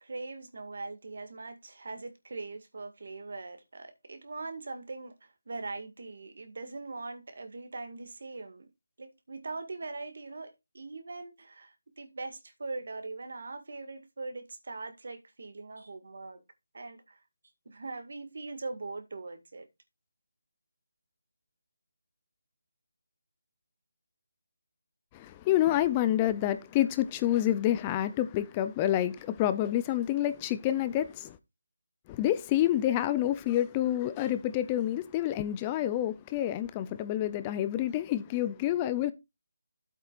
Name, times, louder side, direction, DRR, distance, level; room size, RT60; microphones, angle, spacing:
voice 1, 0.0-8.7 9.0-16.4 16.7-17.2 17.7-19.7, right 3 dB, 60° right, 1.9 m, -41 dB
voice 2, 25.1-31.4 32.1-39.1, left 12 dB, 15° left, 0.4 m, -28 dB
12.5 x 8.1 x 2.5 m
figure-of-eight pair, 170°, 0 cm